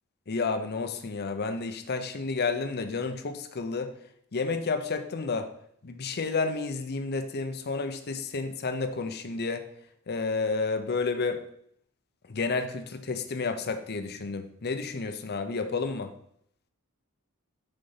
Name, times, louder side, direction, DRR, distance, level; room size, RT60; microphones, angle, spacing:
voice 1, 0.3-3.9 4.3-5.5 5.8-9.6 10.1-11.4 12.3-16.1, left 4 dB, 50° left, 8 dB, 0.7 m, -31 dB
6.8 x 4.1 x 5.6 m, 0.69 s
head